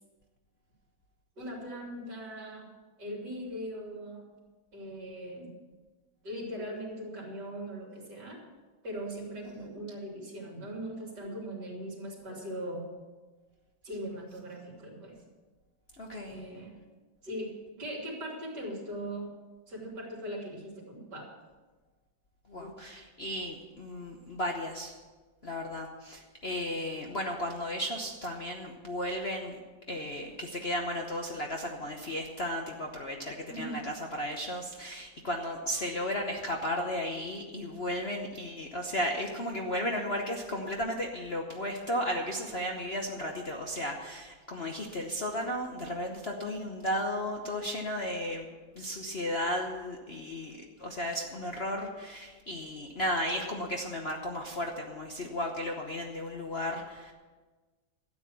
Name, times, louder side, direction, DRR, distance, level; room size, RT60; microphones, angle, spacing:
voice 1, 1.4-2.7 3.0-4.3 4.7-5.5 6.2-8.4 8.8-12.9 13.8-15.2 16.3-16.8 17.2-19.3 19.7-21.3 22.6-22.7 33.5-33.8, equal, 60° right, -1 dB, 3.7 m, -40 dB
voice 2, 16.0-16.4 22.5-24.9 25.4-29.6 29.9-48.5 48.7-57.1, equal, 40° left, 1 dB, 1.0 m, -34 dB
13.0 x 8.6 x 7.0 m, 1.3 s
omnidirectional pair, 2.1 m